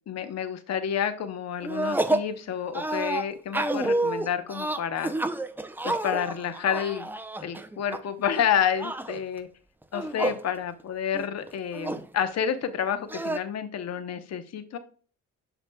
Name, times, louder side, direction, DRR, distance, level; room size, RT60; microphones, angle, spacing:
voice 1, 0.1-5.1 5.8-7.1 7.4-9.5 9.9-14.8, left 8 dB, 60° left, 10 dB, 0.9 m, -29 dB
sound 1, 1.6-2.3 2.7-8.0 8.3-9.2 9.8-10.4 10.8-10.9 11.1-12.1 13.1-13.4, right 2 dB, 5° right, 0.5 m, -29 dB
7.7 x 6.2 x 2.2 m, 0.41 s
cardioid pair, 90°, 30 cm